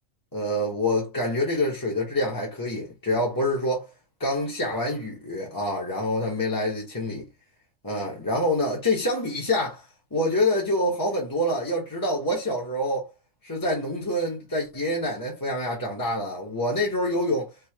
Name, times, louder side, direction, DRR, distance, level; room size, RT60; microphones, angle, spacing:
voice 1, 0.3-3.9 4.2-7.3 7.8-9.8 10.1-13.1 13.4-17.5, left 1 dB, 15° left, 1.1 m, -26 dB
3.6 x 2.7 x 2.8 m
omnidirectional pair, 1.4 m